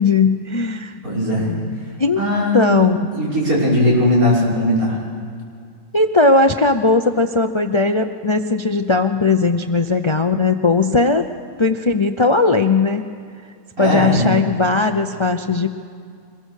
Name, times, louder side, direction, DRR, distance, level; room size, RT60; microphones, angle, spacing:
voice 1, 0.0-1.0 2.0-2.2 2.5-3.1 5.9-11.2 11.6-13.0 13.8-15.7, left 3 dB, 35° left, 7 dB, 0.5 m, -17 dB
voice 2, 1.0-1.5 2.2-2.7 3.1-5.0 13.8-14.3, left 1 dB, 80° right, -5 dB, 6.3 m, -18 dB
24.5 x 21.0 x 6.5 m, 2.3 s
omnidirectional pair, 1.5 m